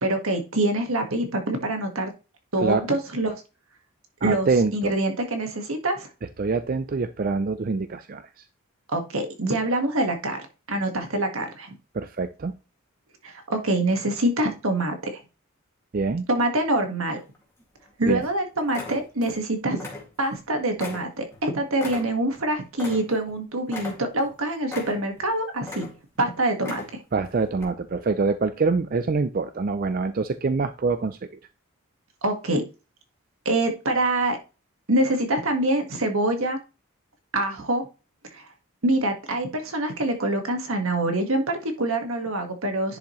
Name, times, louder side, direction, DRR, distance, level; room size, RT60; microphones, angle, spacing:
voice 1, 0.0-2.1 2.5-3.4 4.2-6.1 8.9-11.7 13.2-15.2 16.3-17.2 18.0-19.8 20.2-25.9 26.2-26.8 32.2-32.6 33.5-34.4 34.9-36.6 37.3-37.9 38.3-38.4 38.8-43.0, right 1 dB, 75° right, 5 dB, 1.7 m, -25 dB
voice 2, 4.2-4.9 6.4-8.2 11.9-12.5 15.9-16.3 18.1-18.2 27.1-31.3, right 4 dB, 40° right, 11 dB, 0.4 m, -25 dB
sound 1, 17.2-17.8 18.2-18.4 18.7-19.4 19.7-20.4 20.8-23.4 23.7-24.3 24.7-25.2 25.6-26.2 26.5-27.1 27.6-27.7, left 3 dB, 10° left, 2.2 m, -38 dB
10.5 x 4.9 x 3.1 m, 0.31 s
head